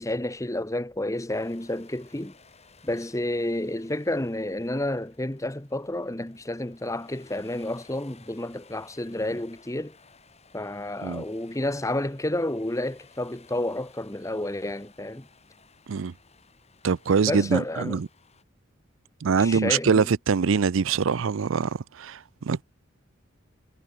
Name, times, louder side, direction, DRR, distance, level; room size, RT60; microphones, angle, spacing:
voice 1, 0.0-2.3 2.8-10.0 10.5-15.3 17.2-18.0 19.4-20.1, left 1 dB, 15° left, 1.3 m, -30 dB
sound 1, 1.3-18.4, left 4 dB, 30° left, 5.7 m, -57 dB
voice 2, 16.8-18.1 19.2-22.6, right 5 dB, 75° right, 0.5 m, -24 dB
head